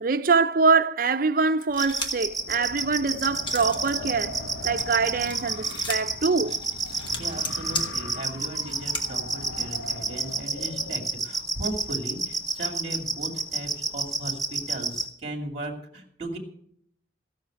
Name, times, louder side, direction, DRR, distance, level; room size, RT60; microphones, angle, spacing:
voice 1, 0.0-4.4 4.6-6.6, right 4 dB, 45° right, 0.6 m, -24 dB
sound 1, 1.6-2.3 2.7-4.0 4.3-9.0, left 2 dB, 25° left, 1.8 m, -35 dB
sound 2, 1.8-15.0, right 3 dB, ahead, 2.5 m, -28 dB
Wind, 2.4-11.1, left 1 dB, 75° left, 1.5 m, -40 dB
voice 2, 7.2-16.4, right 1 dB, 30° right, 2.4 m, -37 dB
16.5 x 6.5 x 9.1 m
head